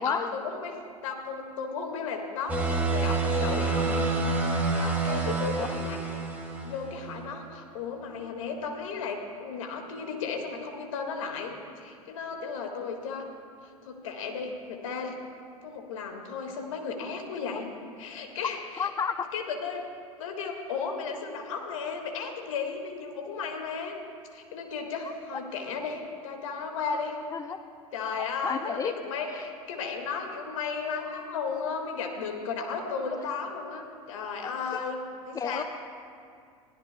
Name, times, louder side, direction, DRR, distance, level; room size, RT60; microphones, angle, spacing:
voice 1, 0.0-4.1 4.5-6.0 6.6-13.3 13.8-15.2 15.6-17.7 18.0-18.9 19.3-19.9 20.2-24.0 24.3-27.2 27.9-35.6, left 5 dB, 60° left, 3 dB, 1.8 m, -34 dB
sound 1, 2.5-6.9, right 3 dB, 10° right, 2.4 m, -27 dB
voice 2, 18.8-19.3 27.3-27.6 28.4-29.0 29.3-29.4 34.4-34.8 35.3-35.6, left 6 dB, 20° left, 10 dB, 0.6 m, -32 dB
22.0 x 16.5 x 2.2 m, 2.3 s
figure-of-eight pair, 80°, 19 cm